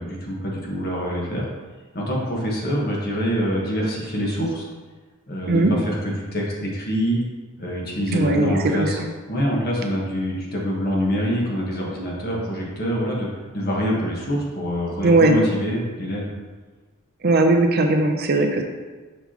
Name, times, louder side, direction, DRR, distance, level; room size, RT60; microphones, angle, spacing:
voice 1, 0.0-1.5 1.9-4.7 5.3-7.2 7.6-9.0 9.3-13.3 13.5-16.3, equal, 45° left, -3 dB, 1.4 m, -25 dB
voice 2, 8.1-9.1 15.0-15.4 17.2-18.6, right 2 dB, 45° right, 4 dB, 0.5 m, -18 dB
5.8 x 5.7 x 2.9 m, 1.3 s
head